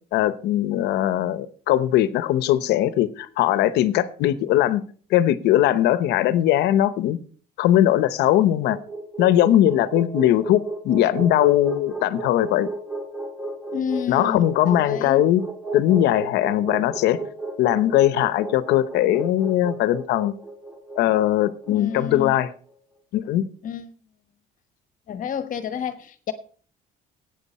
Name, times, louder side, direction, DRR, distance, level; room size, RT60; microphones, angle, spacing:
voice 1, 0.1-4.8 5.1-7.2 7.6-8.8 9.2-12.7 14.1-15.4 15.7-17.2 17.6-20.3 21.0-22.5 23.1-23.4, left 12 dB, 85° left, 0.9 m, -20 dB
sound 1, 8.4-22.5, right 2 dB, 5° right, 1.8 m, -33 dB
voice 2, 13.7-15.3 21.7-22.3 23.6-23.9 25.1-26.3, left 7 dB, 50° left, 1.2 m, -30 dB
13.0 x 9.1 x 4.2 m
cardioid pair, 110°, 17 cm